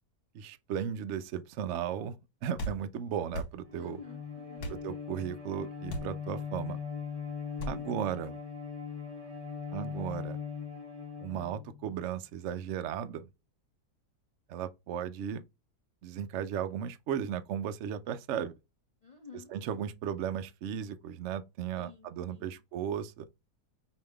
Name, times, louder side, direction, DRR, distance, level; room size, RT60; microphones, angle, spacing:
voice 1, 0.3-2.2 2.4-4.0 4.7-6.8 7.7-8.4 9.7-10.4 11.2-13.3 14.5-15.4 16.0-18.5 19.5-23.3, right 9 dB, 70° right, 0.7 m, -35 dB
sound 1, 2.6-2.8 3.3-3.5 4.6-4.8 5.9-6.1 7.6-7.8, equal, 70° left, 1.6 m, -36 dB
Bowed string instrument, 3.6-12.0, left 6 dB, 30° right, 0.8 m, -40 dB
voice 2, 3.7-4.7 19.0-19.5 21.7-22.6, left 6 dB, 35° left, 0.6 m, -51 dB
5.0 x 2.7 x 3.3 m
omnidirectional pair, 1.7 m